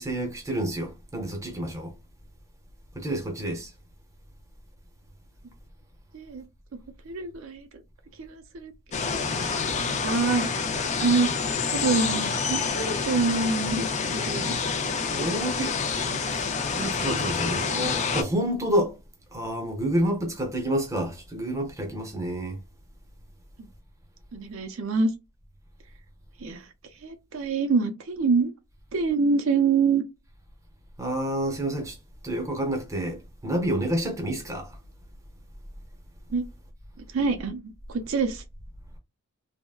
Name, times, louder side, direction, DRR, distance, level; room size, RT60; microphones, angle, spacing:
voice 1, 0.0-1.9 2.9-3.7 15.1-15.8 16.3-16.5 16.8-19.0 19.3-22.6 31.0-32.0 32.2-34.8, right 1 dB, 15° right, 0.7 m, -29 dB
voice 2, 6.1-6.4 7.1-7.8 8.2-8.7 9.1-9.5 10.0-10.5 11.0-11.3 11.7-14.6 24.3-25.1 26.4-26.7 27.0-28.5 28.9-30.0 36.3-36.5 37.1-38.4, right 4 dB, 65° right, 0.5 m, -26 dB
sound 1, 8.9-18.2, left 5 dB, 30° left, 0.4 m, -28 dB
3.4 x 2.1 x 2.3 m
head